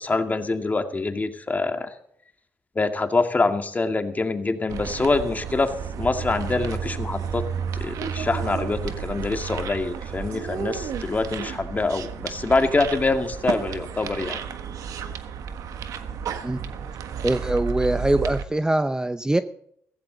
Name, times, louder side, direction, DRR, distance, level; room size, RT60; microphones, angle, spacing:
voice 1, 0.0-1.9 2.8-5.7 6.0-7.4 7.8-14.4, left 3 dB, 30° left, 6 dB, 2.1 m, -25 dB
sound 1, 4.7-18.4, right 7 dB, 80° right, 1.4 m, -32 dB
voice 2, 17.2-19.4, right 1 dB, 10° right, 11 dB, 0.8 m, -23 dB
16.0 x 15.5 x 4.0 m, 0.69 s
cardioid pair, 70°, 6 cm